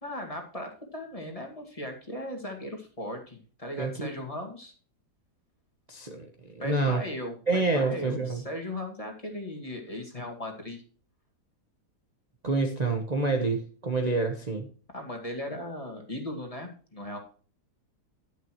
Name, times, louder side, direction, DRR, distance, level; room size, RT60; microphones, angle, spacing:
voice 1, 0.0-4.7 6.6-10.8 14.9-17.2, left 1 dB, 20° left, 2 dB, 2.2 m, -37 dB
voice 2, 3.8-4.1 5.9-6.2 6.5-7.0 7.5-8.4 12.4-14.7, right 3 dB, 25° right, 2 dB, 1.2 m, -27 dB
11.0 x 10.5 x 3.1 m, 0.40 s
omnidirectional pair, 1.7 m